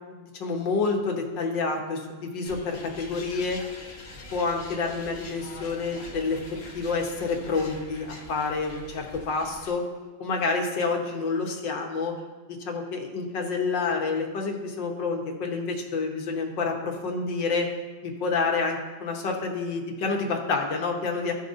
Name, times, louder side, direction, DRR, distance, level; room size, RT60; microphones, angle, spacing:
voice 1, 0.1-3.6 4.3-9.8 10.2-12.2 12.5-17.7 18.0-21.3, left 4 dB, 90° left, 2 dB, 1.9 m, -28 dB
sound 1, 2.4-9.7, left 2 dB, 70° left, 1.8 m, -44 dB
15.5 x 5.3 x 2.6 m, 1.3 s
omnidirectional pair, 1.9 m